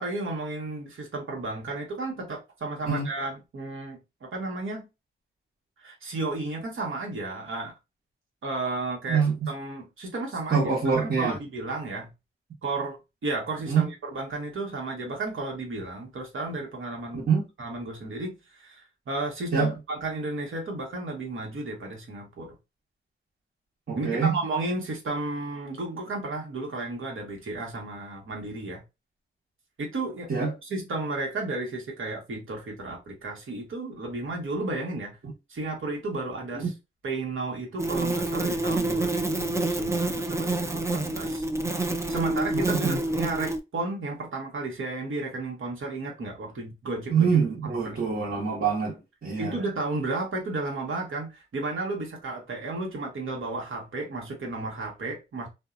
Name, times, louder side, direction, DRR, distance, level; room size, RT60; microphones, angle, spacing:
voice 1, 0.0-4.9 5.8-7.7 8.4-10.7 11.0-12.1 12.6-17.3 17.6-22.6 23.9-28.8 29.8-30.3 30.6-35.2 35.5-36.7 37.0-41.4 42.1-47.3 47.6-48.3 49.4-55.5, right 2 dB, 75° right, 1.1 m, -33 dB
voice 2, 9.1-9.5 10.5-11.4 13.7-13.8 17.3-17.4 19.5-19.7 23.9-24.3 30.3-30.5 36.5-36.6 42.5-43.0 47.1-49.5, right 5 dB, 55° right, 1.2 m, -25 dB
sound 1, 37.8-43.6, right 2 dB, 15° right, 0.4 m, -27 dB
2.6 x 2.2 x 2.4 m
cardioid pair, 70°, 21 cm